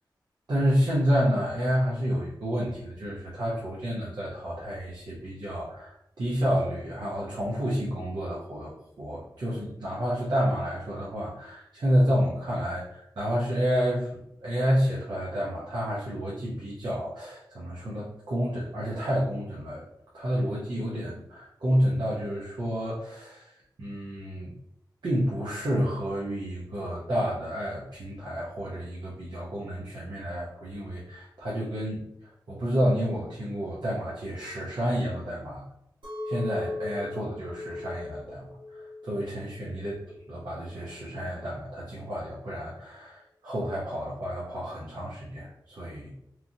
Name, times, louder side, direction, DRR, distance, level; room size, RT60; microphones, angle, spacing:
voice 1, 0.5-19.9 20.1-24.5 25.0-35.6 36.2-39.9 40.3-46.1, equal, 65° right, -6 dB, 0.7 m, -29 dB
Chink clink, 36.0-41.2, left 2 dB, 90° right, 1.0 m, -38 dB
3.0 x 2.5 x 2.7 m, 0.79 s
wide cardioid pair, 70°, 8 cm